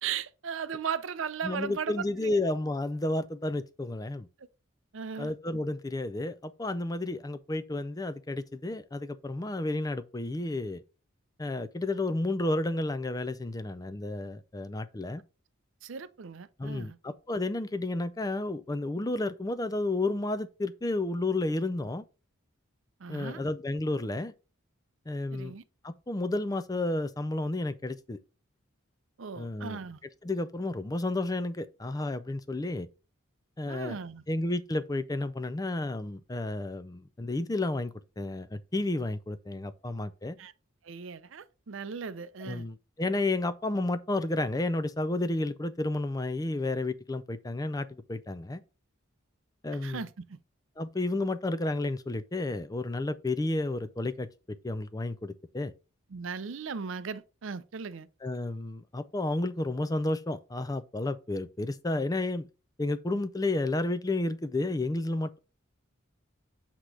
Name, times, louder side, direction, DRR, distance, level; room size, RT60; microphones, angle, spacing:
voice 1, 0.0-2.4 4.9-5.3 15.8-17.0 23.0-23.4 25.3-25.6 29.2-30.0 33.7-34.2 40.4-40.5 40.8-42.7 49.8-50.4 56.1-58.1, right 6 dB, 70° right, 0.5 m, -37 dB
voice 2, 1.4-4.3 5.2-10.8 11.4-15.2 16.6-22.0 23.1-24.3 25.1-25.5 25.8-28.2 29.4-29.8 30.2-32.9 33.6-34.0 34.3-40.4 42.4-48.6 49.6-50.0 50.8-54.3 54.6-55.7 58.2-62.5 62.8-65.4, left 2 dB, 15° left, 0.4 m, -31 dB
8.1 x 3.0 x 4.8 m
head